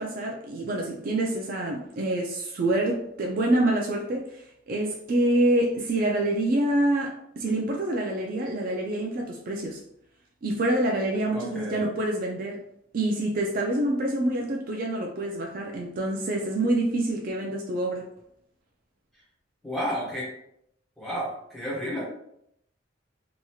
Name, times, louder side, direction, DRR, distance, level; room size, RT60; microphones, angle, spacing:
voice 1, 0.0-9.8 10.4-12.6 12.9-18.0, right 1 dB, 50° right, 1 dB, 0.3 m, -26 dB
voice 2, 11.3-11.9 19.6-20.3 21.0-22.1, equal, ahead, -7 dB, 1.2 m, -32 dB
2.8 x 2.7 x 2.3 m, 0.75 s
head